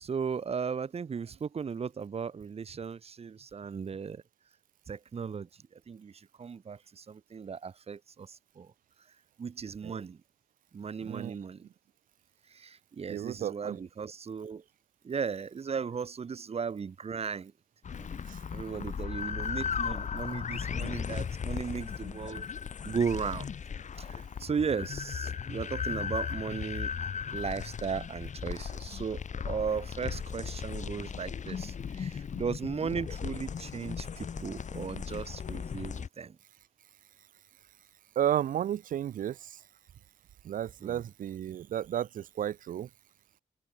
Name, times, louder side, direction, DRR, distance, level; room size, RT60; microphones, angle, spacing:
voice 1, 0.0-4.2 4.9-5.5 5.9-6.1 6.4-8.7 9.4-10.2 10.7-11.6 12.5-14.6 15.0-17.5 18.0-18.1 18.5-22.5 22.8-23.5 24.0-26.9 27.3-36.4 40.8-41.0, right 6 dB, 45° right, 1.1 m, -36 dB
voice 2, 11.0-11.3 13.1-13.8 18.3-18.4 38.1-39.6 40.4-42.9, right 10 dB, 80° right, 1.3 m, -33 dB
sound 1, 17.8-36.1, left 7 dB, 60° left, 6.1 m, -37 dB
cardioid pair, 60°, 14 cm